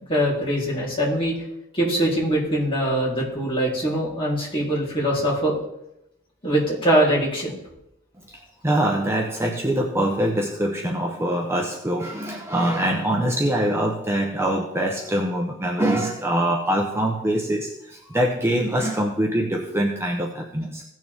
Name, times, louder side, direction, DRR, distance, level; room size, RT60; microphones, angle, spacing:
voice 1, 0.1-1.3 1.7-5.5 6.4-7.5, right 1 dB, 25° left, -6 dB, 3.7 m, -22 dB
voice 2, 8.3-20.8, right 1 dB, 15° right, 0 dB, 0.9 m, -24 dB
16.0 x 6.5 x 3.6 m, 0.83 s
head